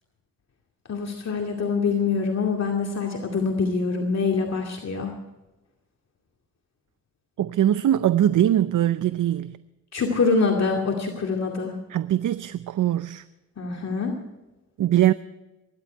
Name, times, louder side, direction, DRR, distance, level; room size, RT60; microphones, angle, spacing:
voice 1, 0.9-5.1 9.9-11.7 13.6-14.1, left 4 dB, 55° left, 2.4 m, -25 dB
voice 2, 7.4-9.6 11.9-13.2 14.8-15.1, right 11 dB, 70° right, 0.6 m, -21 dB
23.5 x 11.5 x 4.6 m
cardioid pair, 75°, 32 cm